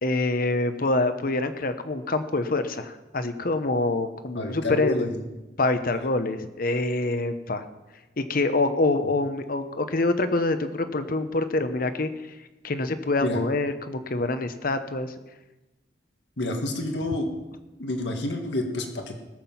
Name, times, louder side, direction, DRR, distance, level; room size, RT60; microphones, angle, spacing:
voice 1, 0.0-5.1 5.6-7.6 8.2-12.1 12.6-15.1, left 2 dB, 55° left, 10 dB, 1.0 m, -26 dB
voice 2, 4.4-5.2 13.2-13.4 16.4-17.3 17.8-19.2, left 1 dB, 80° left, 4 dB, 1.8 m, -29 dB
19.5 x 7.6 x 5.9 m, 1.1 s
head